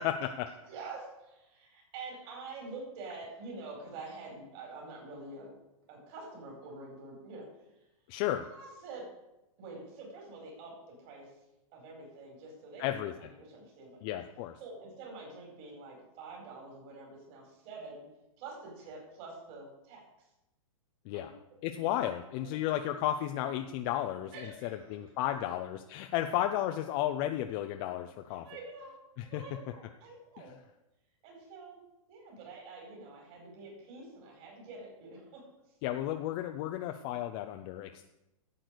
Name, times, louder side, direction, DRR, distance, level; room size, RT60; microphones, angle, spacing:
voice 1, 0.0-0.5 8.1-8.4 12.8-13.1 14.0-14.5 21.1-21.3 21.6-24.3 24.6-28.4 29.2-29.4 35.8-38.0, left 12 dB, 40° left, 6 dB, 0.7 m, -33 dB
voice 2, 0.7-5.5 5.9-7.4 8.4-9.1 9.6-11.3 11.7-14.0 14.6-18.0 18.4-20.0 21.1-21.3 21.8-21.9 22.4-22.7 24.3-25.0 26.1-26.3 28.4-28.9 29.3-30.5 31.2-31.8 32.1-35.4, right 3 dB, 45° right, -1 dB, 4.8 m, -47 dB
10.5 x 7.6 x 6.6 m, 0.91 s
hypercardioid pair, 125°, 18 cm